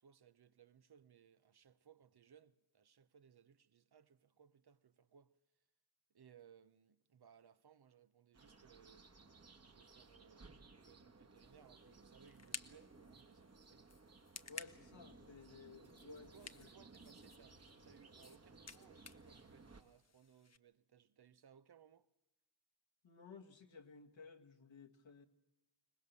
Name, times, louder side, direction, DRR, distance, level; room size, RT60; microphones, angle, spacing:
voice 1, 0.0-5.4 6.1-9.1 9.6-14.0 16.1-22.1, right 7 dB, 55° right, 0.9 m, -65 dB
sound 1, 8.3-19.8, right 3 dB, 30° right, 1.5 m, -61 dB
sound 2, 11.4-20.6, left 5 dB, 35° left, 0.8 m, -56 dB
voice 2, 14.5-16.3 16.6-16.7 23.0-25.2, left 5 dB, 70° left, 1.8 m, -56 dB
22.5 x 19.0 x 6.9 m
cardioid pair, 50°, 47 cm